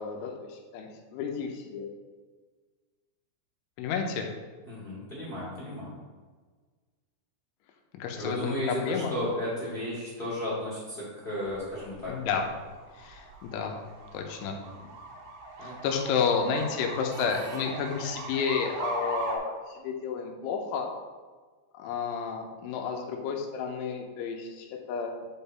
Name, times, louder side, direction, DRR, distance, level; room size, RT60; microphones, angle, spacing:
voice 1, 0.0-1.9 3.8-4.3 7.9-9.1 12.1-12.5 12.9-13.7 14.1-14.6 15.6-20.9 21.7-25.3, left 6 dB, 80° left, 2 dB, 3.2 m, -31 dB
voice 2, 4.6-6.0 8.1-12.1 14.5-14.8 15.6-15.7, left 1 dB, 65° left, -8 dB, 0.5 m, -34 dB
sound 1, 11.5-19.4, right 3 dB, 70° right, 2.7 m, -39 dB
11.0 x 3.8 x 4.1 m, 1.4 s
omnidirectional pair, 5.6 m